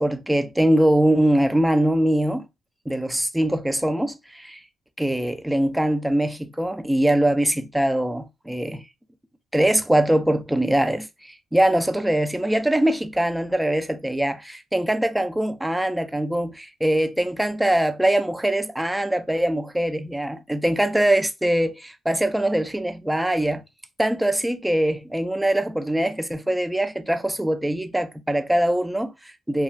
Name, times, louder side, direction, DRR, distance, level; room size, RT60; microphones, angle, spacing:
voice 1, 0.0-2.4 2.9-4.6 5.0-8.8 9.5-23.6 24.0-29.6, right 1 dB, 5° right, 0.4 m, -22 dB
2.3 x 2.3 x 3.1 m
cardioid pair, 90°, 0 cm